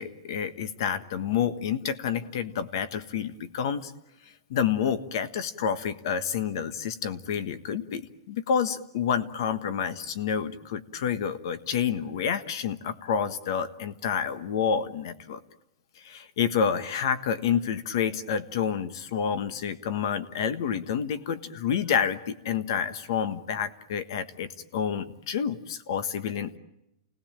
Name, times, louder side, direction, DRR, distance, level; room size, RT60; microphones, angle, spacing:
voice 1, 0.0-3.9 4.5-15.4 16.0-26.6, left 7 dB, 45° left, 14 dB, 1.4 m, -29 dB
29.0 x 18.5 x 9.0 m, 0.91 s
supercardioid pair, 180°, 3 cm